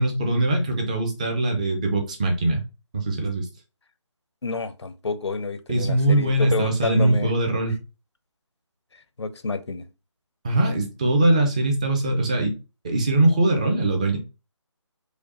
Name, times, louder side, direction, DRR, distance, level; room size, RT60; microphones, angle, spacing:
voice 1, 0.0-2.6 2.9-3.5 5.7-7.8 10.4-12.5 12.8-14.2, right 2 dB, 15° right, 0.5 m, -22 dB
voice 2, 4.4-7.3 9.2-9.9, left 3 dB, 65° left, 0.7 m, -28 dB
5.0 x 2.2 x 4.2 m
figure-of-eight pair, 160°, 16 cm